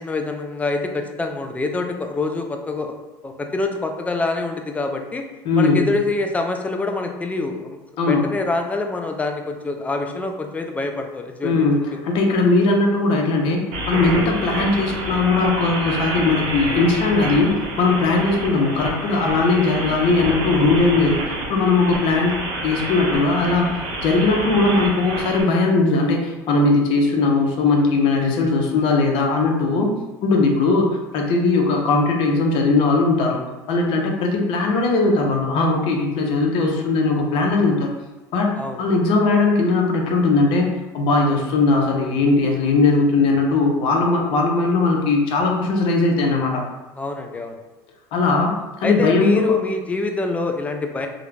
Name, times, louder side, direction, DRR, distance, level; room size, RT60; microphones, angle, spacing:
voice 1, 0.0-3.0 3.2-5.2 5.6-7.8 8.0-11.7 38.5-38.8 47.0-47.6 48.8-51.1, left 3 dB, 15° left, 4 dB, 0.3 m, -25 dB
voice 2, 5.4-5.9 8.0-8.3 11.4-22.4 22.6-23.7 24.0-29.9 30.2-33.4 33.7-37.9 38.3-38.5 38.8-40.7 40.9-46.6 48.1-49.5, left 3 dB, 60° left, 1 dB, 0.6 m, -19 dB
sound 1, 13.7-25.4, right 2 dB, 70° right, 0.7 m, -28 dB
2.3 x 2.1 x 3.1 m, 1.1 s
supercardioid pair, 100°, 10 cm